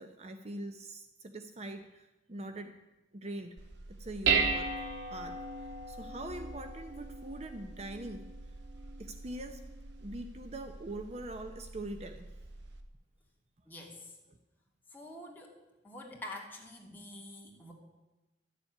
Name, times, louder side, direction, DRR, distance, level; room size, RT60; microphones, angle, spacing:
voice 1, 0.0-2.7 3.1-3.6 3.9-4.9 5.1-8.2 9.0-9.6 10.0-12.3 14.3-14.4, right 1 dB, 35° right, 7 dB, 0.7 m, -43 dB
Dishes pots and pans, 3.6-12.8, right 5 dB, 80° right, 1.4 m, -37 dB
voice 2, 13.7-14.1 14.9-15.6 15.8-17.7, left 1 dB, 10° left, -2 dB, 2.6 m, -46 dB
12.5 x 7.3 x 9.9 m, 1.0 s
head